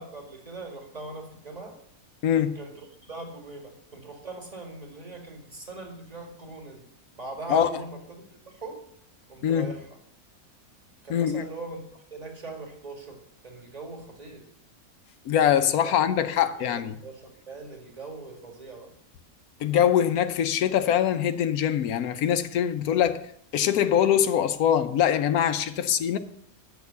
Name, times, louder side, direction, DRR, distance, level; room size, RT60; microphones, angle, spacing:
voice 1, 0.0-1.8 2.6-6.8 7.1-8.8 9.3-10.0 11.0-14.5 15.8-16.0 16.3-18.9, right 3 dB, 25° right, 2.1 m, -41 dB
voice 2, 2.2-2.6 7.5-7.7 9.4-9.7 11.1-11.4 15.3-16.9 19.6-23.2 23.5-26.2, left 9 dB, 85° left, 1.2 m, -23 dB
9.5 x 6.5 x 6.9 m
omnidirectional pair, 1.5 m